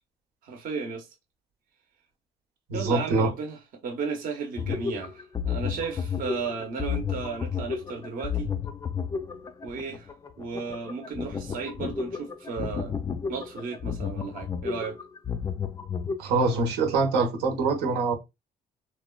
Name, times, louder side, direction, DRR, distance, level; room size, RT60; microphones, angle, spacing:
voice 1, 0.4-1.1 2.7-8.5 9.6-10.1 10.4-12.9 13.3-15.0, right 5 dB, 55° right, 0.8 m, -34 dB
voice 2, 2.7-3.3 16.2-18.1, right 3 dB, 90° right, 0.9 m, -24 dB
sound 1, 4.6-16.2, left 6 dB, 20° left, 0.3 m, -32 dB
3.2 x 2.1 x 2.3 m
cardioid pair, 110°, 17 cm